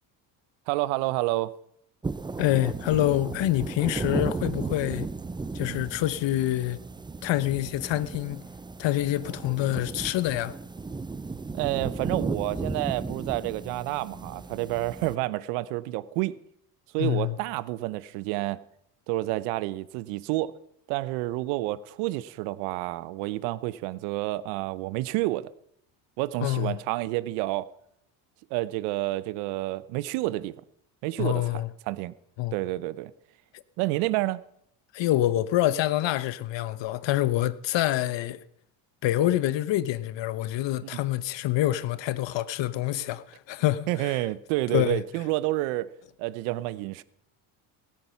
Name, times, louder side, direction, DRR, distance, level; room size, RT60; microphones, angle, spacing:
voice 1, 0.7-1.5 5.7-5.9 11.5-16.3 16.9-18.6 19.1-20.5 20.9-25.4 26.2-27.7 28.5-30.5 31.0-31.4 31.9-32.1 32.5-33.1 33.8-34.4 40.8-41.0 43.9-45.9 46.2-47.0, right 18 dB, 85° right, 0.8 m, -29 dB
sound 1, 2.0-15.2, right 3 dB, 10° right, 0.4 m, -35 dB
voice 2, 2.4-5.1 5.5-6.8 7.2-8.4 8.8-10.5 17.0-17.4 26.4-26.8 31.2-31.7 32.4-32.5 34.9-38.4 39.0-44.2 44.7-45.0, left 14 dB, 60° left, 1.0 m, -26 dB
19.5 x 8.9 x 5.8 m
supercardioid pair, 85°, 49 cm